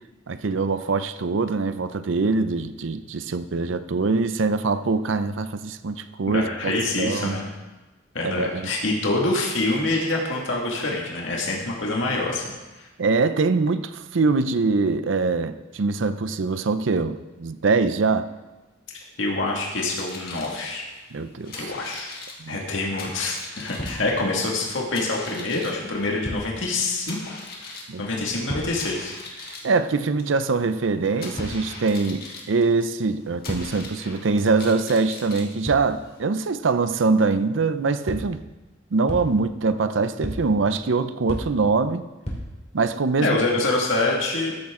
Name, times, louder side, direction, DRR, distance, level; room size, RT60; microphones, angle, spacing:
voice 1, 0.3-6.7 7.0-7.4 8.2-8.7 13.0-18.3 21.1-21.7 22.4-22.6 27.9-28.0 29.4-38.4 38.9-42.0 42.7-43.4, right 4 dB, 70° right, 12 dB, 0.6 m, -23 dB
voice 2, 6.3-7.5 8.1-12.9 19.2-20.8 21.6-22.1 22.5-29.1 43.2-44.6, left 2 dB, 70° left, -2 dB, 2.0 m, -26 dB
sound 1, 19.8-36.2, left 3 dB, 50° left, 2.3 m, -42 dB
sound 2, 23.8-24.4 24.9-25.0 26.2-26.9 28.5-29.1 31.3-32.0 33.4-34.1 35.7-36.1 38.1-38.6 39.1-39.7 40.2-40.8 41.3-41.9 42.2-42.9, equal, 35° left, 3.0 m, -35 dB
14.0 x 10.5 x 3.8 m, 1.1 s
head